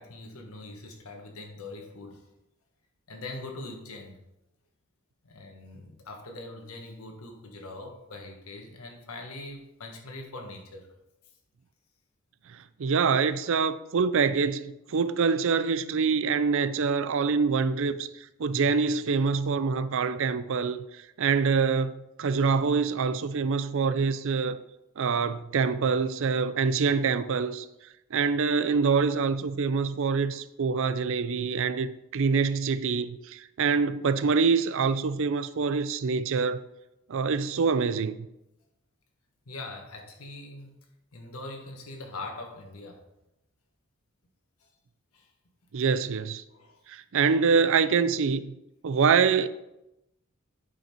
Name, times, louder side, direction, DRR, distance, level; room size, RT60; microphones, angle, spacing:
voice 1, 0.0-2.3 3.1-4.2 5.2-10.9 14.9-15.0 39.4-40.8 41.1-43.0 44.6-44.7 45.1-45.3 46.5-46.8, left 2 dB, 80° left, 1.5 m, -42 dB
voice 2, 12.5-18.1 18.4-24.6 25.0-27.6 28.1-36.6 37.1-38.2 45.7-46.4 46.9-48.5 48.8-49.5, right 5 dB, 65° right, 0.5 m, -25 dB
8.8 x 5.6 x 4.4 m
head